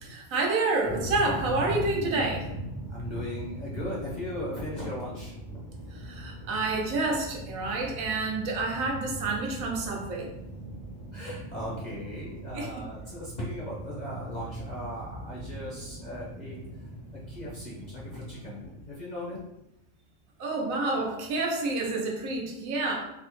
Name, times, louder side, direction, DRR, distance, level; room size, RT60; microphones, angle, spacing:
voice 1, 0.1-2.5 5.9-10.3 12.5-12.8 20.4-23.0, right 3 dB, 80° right, 0 dB, 1.1 m, -29 dB
sound 1, 0.8-18.5, right 1 dB, 85° left, 1.3 m, -40 dB
voice 2, 2.9-5.6 11.1-16.6 17.3-19.4, left 1 dB, 45° left, -6 dB, 0.6 m, -38 dB
3.4 x 2.0 x 3.0 m, 0.87 s
omnidirectional pair, 1.4 m